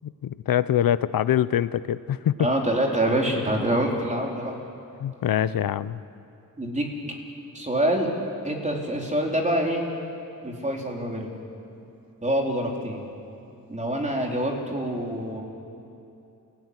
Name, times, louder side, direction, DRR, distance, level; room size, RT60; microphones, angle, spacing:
voice 1, 0.0-2.5 5.0-6.0, left 10 dB, 75° left, 16 dB, 0.8 m, -24 dB
voice 2, 2.4-4.6 6.6-6.9 7.5-8.1 8.4-9.8 10.4-11.3 12.2-13.0 13.7-15.4, right 1 dB, 20° right, 0 dB, 4.2 m, -25 dB
30.0 x 17.5 x 9.8 m, 2.7 s
wide cardioid pair, 110°, 34 cm